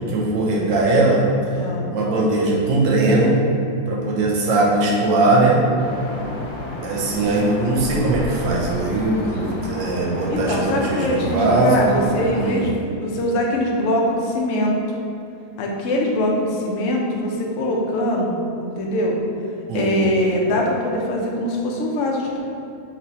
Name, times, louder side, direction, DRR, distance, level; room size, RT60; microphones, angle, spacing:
voice 1, 0.1-1.2 1.9-3.4 3.9-5.6 6.8-12.0 12.3-12.6 19.7-20.0, right 2 dB, 80° right, -3 dB, 1.4 m, -20 dB
voice 2, 1.6-1.9 10.3-14.7 15.6-19.1 19.7-22.4, left 1 dB, 65° left, -1 dB, 0.8 m, -22 dB
sound 1, 5.8-12.5, left 1 dB, 80° left, 1.5 m, -31 dB
4.1 x 3.1 x 4.1 m, 2.7 s
omnidirectional pair, 2.0 m